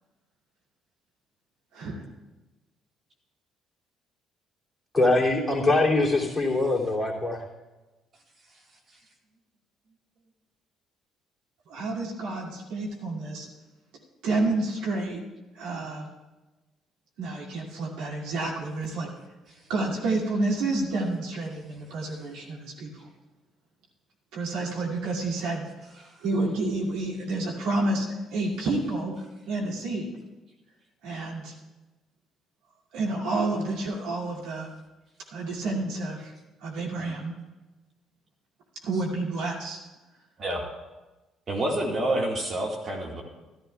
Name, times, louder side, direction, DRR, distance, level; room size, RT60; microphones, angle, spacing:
voice 1, 1.7-2.0 11.7-13.5 14.2-15.2 15.5-16.1 17.2-19.1 19.7-22.9 24.3-25.6 26.2-29.1 29.5-30.1 31.0-31.5 32.9-34.7 35.3-36.3 36.6-37.3 38.8-39.8, right 2 dB, 65° right, -4 dB, 2.3 m, -29 dB
voice 2, 4.9-7.4, left 2 dB, 15° left, -2 dB, 2.6 m, -23 dB
voice 3, 41.5-43.2, right 1 dB, 40° right, -1 dB, 1.7 m, -29 dB
14.0 x 13.0 x 2.3 m, 1.1 s
figure-of-eight pair, 50°, 0 cm